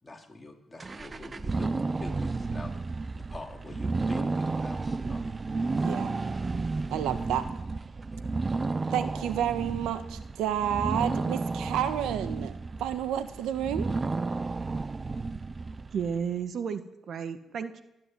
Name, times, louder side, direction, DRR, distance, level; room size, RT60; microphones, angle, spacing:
voice 1, 0.0-2.9 3.2-5.4 7.1-7.3 8.1-8.3, left 2 dB, 20° left, 1 dB, 3.8 m, -45 dB
sound 1, 0.8-16.2, right 3 dB, 25° right, 0.7 m, -32 dB
voice 2, 6.9-7.5 8.9-13.9, right 10 dB, 90° right, 10 dB, 1.5 m, -30 dB
voice 3, 15.9-17.8, right 7 dB, 60° right, 9 dB, 1.7 m, -33 dB
25.0 x 10.5 x 9.6 m, 0.93 s
cardioid pair, 90°, 0 cm